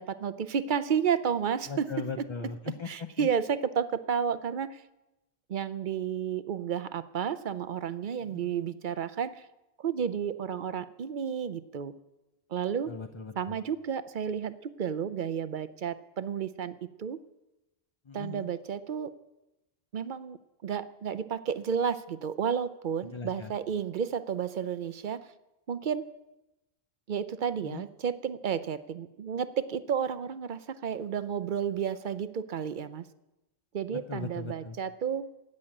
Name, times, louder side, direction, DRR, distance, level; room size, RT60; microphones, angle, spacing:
voice 1, 0.0-1.9 2.9-4.8 5.5-9.4 9.8-11.9 12.5-12.9 13.4-17.2 18.1-19.1 19.9-25.3 25.7-26.0 27.1-33.1 33.7-35.3, right 7 dB, 55° right, 14 dB, 0.7 m, -32 dB
voice 2, 1.7-3.3 8.2-8.6 12.9-13.6 18.1-18.5 23.0-23.5 27.6-27.8 33.9-34.8, left 5 dB, 35° left, 8 dB, 0.5 m, -39 dB
16.0 x 6.5 x 8.9 m, 0.98 s
omnidirectional pair, 1.1 m